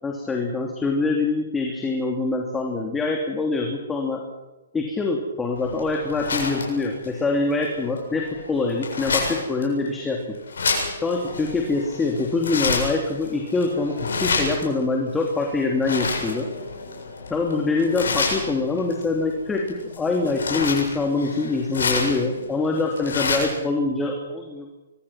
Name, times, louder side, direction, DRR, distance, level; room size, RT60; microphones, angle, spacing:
voice 1, 0.0-4.2 4.7-10.2 11.0-16.5 17.3-24.7, left 3 dB, 10° left, 1 dB, 3.1 m, -24 dB
sound 1, 5.6-23.6, left 4 dB, 70° left, 7.7 m, -30 dB
24.5 x 23.0 x 6.0 m, 1.0 s
hypercardioid pair, 130°, 0 cm